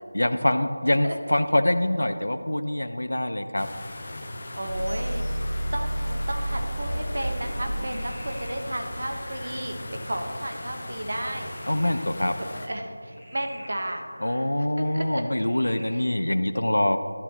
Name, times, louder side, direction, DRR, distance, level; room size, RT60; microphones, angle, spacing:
voice 1, 0.1-3.7 11.7-12.3 14.2-17.0, left 1 dB, 85° left, 10 dB, 0.7 m, -24 dB
voice 2, 0.9-1.2 4.5-5.2 5.7-9.8 10.0-11.5 12.4-14.1 14.6-14.7 14.9-15.2 15.9-16.0, right 1 dB, 55° right, 4 dB, 1.2 m, -33 dB
sound 1, 3.6-12.7, left 1 dB, 30° left, 1.0 m, -39 dB
sound 2, 4.7-9.6, right 1 dB, 70° right, 1.6 m, -31 dB
Frog, 7.3-15.9, equal, 10° right, 2.4 m, -48 dB
13.0 x 10.5 x 3.0 m, 2.2 s
figure-of-eight pair, 175°, 0 cm